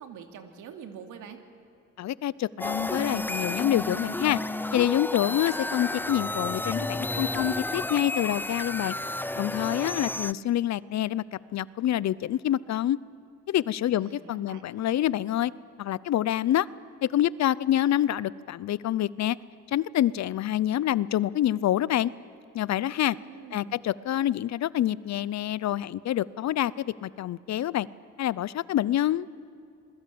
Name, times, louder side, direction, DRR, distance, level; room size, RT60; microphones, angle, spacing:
voice 1, 0.0-1.4 14.0-14.7 23.2-23.8, right 7 dB, 80° right, 5 dB, 2.9 m, -45 dB
voice 2, 2.0-4.4 4.7-8.9 9.3-11.2 11.5-13.0 13.5-15.5 15.8-16.7 17.1-19.4 19.7-22.1 22.5-23.2 23.5-27.9 28.2-29.3, left 12 dB, 65° left, 20 dB, 0.7 m, -27 dB
sound 1, 2.6-10.3, left 2 dB, 5° left, 0.6 m, -31 dB
28.0 x 21.0 x 8.7 m, 2.5 s
cardioid pair, 90°, 30 cm